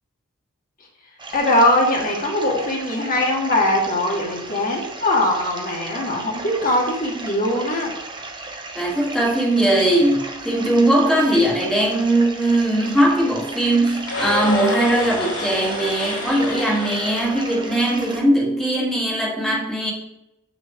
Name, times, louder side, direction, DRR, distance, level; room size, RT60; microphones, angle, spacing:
sound 1, 1.2-18.2, right 2 dB, 20° right, 0.9 m, -36 dB
voice 1, 1.3-7.9, left 1 dB, 40° left, -1 dB, 1.5 m, -21 dB
voice 2, 8.7-19.9, right 1 dB, ahead, -3 dB, 1.4 m, -20 dB
sound 2, 14.0-18.2, left 2 dB, 80° left, 2.9 m, -29 dB
7.1 x 6.2 x 3.6 m, 0.86 s
head